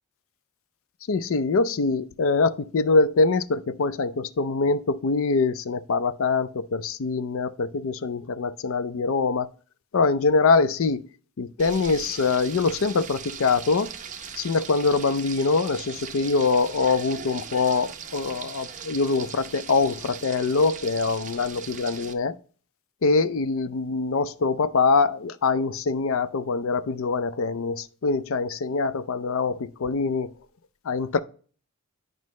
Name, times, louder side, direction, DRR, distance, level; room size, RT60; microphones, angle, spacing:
voice 1, 1.1-9.5 9.9-11.0 11.4-13.9 14.4-22.3 23.0-30.3 30.9-31.2, left 4 dB, 65° left, 0.4 m, -24 dB
Frying (food), 11.6-22.1, right 7 dB, 35° right, 0.6 m, -39 dB
9.3 x 5.3 x 3.1 m
head